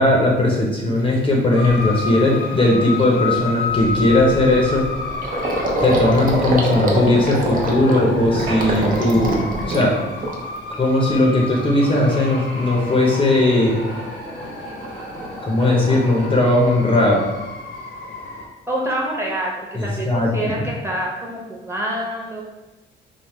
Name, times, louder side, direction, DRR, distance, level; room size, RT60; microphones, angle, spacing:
voice 1, 0.0-4.8 5.8-9.9 10.8-13.7 15.4-17.2 19.7-20.7, left 1 dB, 25° left, -3 dB, 0.6 m, -18 dB
Gurgling, 1.1-1.2 1.6-1.9 2.3-2.4 2.7-10.7 11.1-11.7, right 1 dB, 45° right, 0.6 m, -25 dB
sound 1, 1.5-18.5, left 4 dB, 65° left, 0.7 m, -31 dB
sound 2, 5.2-16.3, right 1 dB, 80° right, 1.4 m, -38 dB
voice 2, 18.7-22.4, right 1 dB, 15° right, -4 dB, 0.9 m, -26 dB
3.3 x 2.0 x 3.1 m, 1.1 s
cardioid pair, 90°, 20 cm